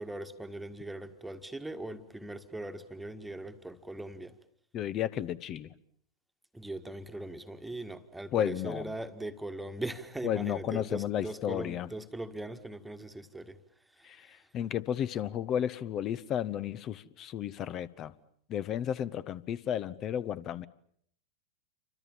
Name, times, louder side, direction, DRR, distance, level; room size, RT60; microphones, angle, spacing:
voice 1, 0.0-4.4 6.5-13.6 14.0-14.4, right 1 dB, 5° right, 1.8 m, -40 dB
voice 2, 4.7-5.7 8.3-8.9 10.2-11.9 14.0-14.2 14.5-18.1 18.5-20.7, left 10 dB, 30° left, 1.1 m, -33 dB
29.0 x 25.0 x 7.2 m
figure-of-eight pair, 90°, 0 cm